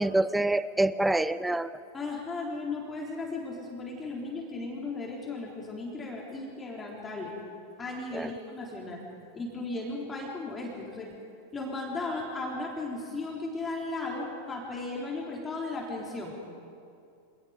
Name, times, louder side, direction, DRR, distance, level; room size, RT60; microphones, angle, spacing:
voice 1, 0.0-1.7 8.1-8.3, right 2 dB, 5° right, 16 dB, 0.5 m, -26 dB
voice 2, 1.9-7.3 7.8-9.0 9.3-11.1 11.5-16.3, left 3 dB, 15° left, -2 dB, 3.7 m, -36 dB
26.5 x 19.0 x 5.1 m, 2.5 s
figure-of-eight pair, 90°, 0 cm